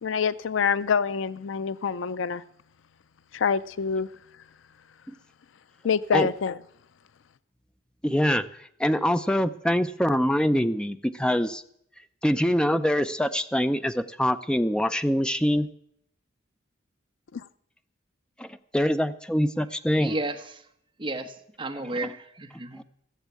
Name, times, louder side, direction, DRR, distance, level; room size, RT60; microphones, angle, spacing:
voice 1, 0.0-2.4 3.3-4.1 5.8-6.6 17.3-17.4, left 6 dB, 75° left, 0.5 m, -26 dB
voice 2, 8.0-8.5 8.8-11.6 12.2-15.7 18.4-20.2 22.0-22.1 22.7-22.8, equal, 5° left, 0.5 m, -24 dB
voice 3, 20.0-20.4 21.0-22.8, right 2 dB, 25° right, 1.1 m, -32 dB
15.0 x 7.3 x 8.3 m
head